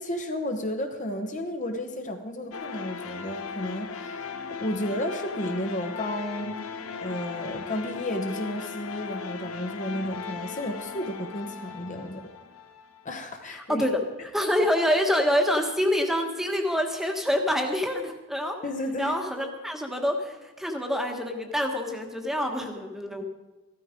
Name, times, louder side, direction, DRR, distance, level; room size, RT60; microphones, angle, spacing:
voice 1, 0.0-4.3 4.6-6.6 7.0-12.2 13.0-13.9 18.6-19.2 23.1-23.2, left 1 dB, 35° left, 4 dB, 1.1 m, -32 dB
sound 1, 2.5-13.4, left 5 dB, 85° left, 1.0 m, -38 dB
voice 2, 13.5-14.0 14.3-18.6 19.0-23.2, equal, ahead, 3 dB, 1.4 m, -26 dB
14.5 x 12.5 x 5.1 m, 1.1 s
head